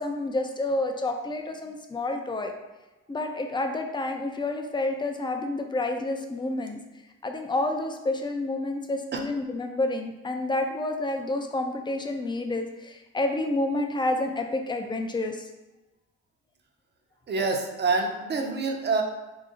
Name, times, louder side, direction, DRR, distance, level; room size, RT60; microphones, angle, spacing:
voice 1, 0.0-2.5 3.1-6.8 7.2-15.5, left 2 dB, 15° left, 4 dB, 0.4 m, -29 dB
voice 2, 17.3-19.0, right 3 dB, 35° right, 3 dB, 0.6 m, -26 dB
3.9 x 2.0 x 3.6 m, 1.1 s
cardioid pair, 90°, 30 cm